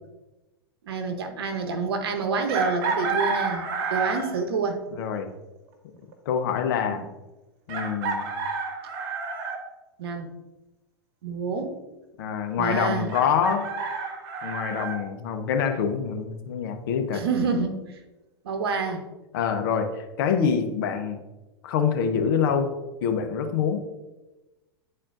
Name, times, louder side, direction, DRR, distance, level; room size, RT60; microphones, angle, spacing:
voice 1, 0.8-4.8 6.9-7.0 10.0-10.3 11.2-11.8 12.6-13.1 17.1-18.0 18.4-19.0, right 4 dB, 75° right, 6 dB, 0.9 m, -28 dB
Chicken rooster, 2.5-4.4 6.1-6.2 7.7-9.6 13.1-15.0, right 4 dB, 55° right, 1.4 m, -29 dB
voice 2, 4.9-5.3 6.3-7.0 7.7-8.3 12.2-13.7 14.4-17.2 19.3-21.2 21.6-22.7 23.0-23.8, left 7 dB, 60° left, 6 dB, 0.9 m, -25 dB
9.9 x 4.2 x 2.5 m, 1.1 s
hypercardioid pair, 100°, 13 cm